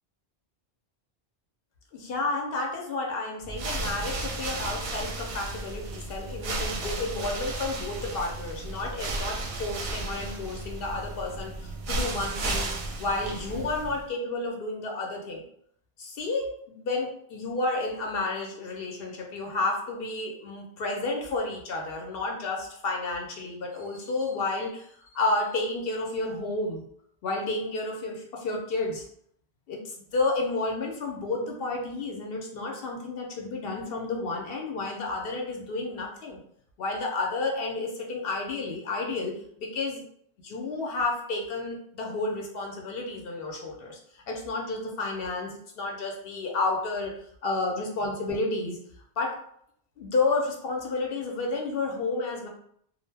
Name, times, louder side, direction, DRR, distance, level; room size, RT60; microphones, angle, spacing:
voice 1, 1.9-12.7 13.0-15.4 16.0-24.9 25.1-26.8 27.2-29.0 29.7-29.8 30.1-36.4 36.8-39.3 39.6-40.0 40.4-44.0 44.3-47.1 47.4-48.8 49.2-49.4 50.0-52.5, left 3 dB, 65° left, 0 dB, 0.7 m, -31 dB
sound 1, 3.4-14.1, right 2 dB, 60° right, 0.6 m, -34 dB
2.4 x 2.1 x 3.2 m, 0.67 s
omnidirectional pair, 1.1 m